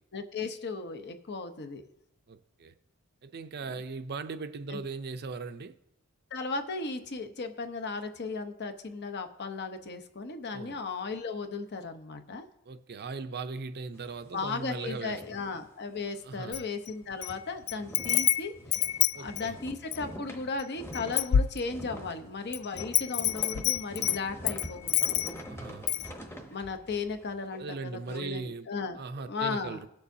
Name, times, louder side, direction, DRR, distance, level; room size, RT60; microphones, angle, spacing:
voice 1, 0.1-1.9 4.7-4.8 6.3-12.4 14.3-18.8 19.2-25.2 26.5-29.8, left 4 dB, 50° left, 0.8 m, -36 dB
voice 2, 2.3-2.7 3.2-5.7 10.5-10.8 12.7-15.4 16.2-16.6 19.1-19.5 25.5-25.9 27.6-28.7 29.0-29.9, right 4 dB, 50° right, 0.5 m, -39 dB
sound 1, 13.9-16.2 16.5-16.7 17.0-28.2, equal, 10° left, 1.0 m, -46 dB
Wind chime, 16.5-17.3 17.7-20.1 20.6-20.7 20.9-22.0 22.5-25.5 25.9-26.1, left 12 dB, 70° left, 0.3 m, -28 dB
18.5 x 6.9 x 2.7 m
head